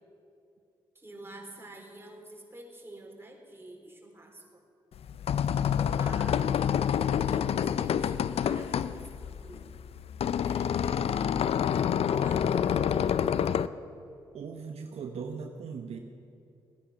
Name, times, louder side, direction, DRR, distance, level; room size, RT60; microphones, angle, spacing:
voice 1, 0.9-4.4 5.7-6.4 7.2-9.7 10.4-12.9, right 1 dB, 20° right, 0 dB, 4.0 m, -48 dB
sound 1, 5.0-13.7, left 8 dB, 65° left, 0.5 m, -27 dB
voice 2, 14.3-16.0, right 5 dB, 70° right, 4 dB, 1.0 m, -39 dB
17.5 x 9.9 x 6.2 m, 2.6 s
supercardioid pair, 45°, 11 cm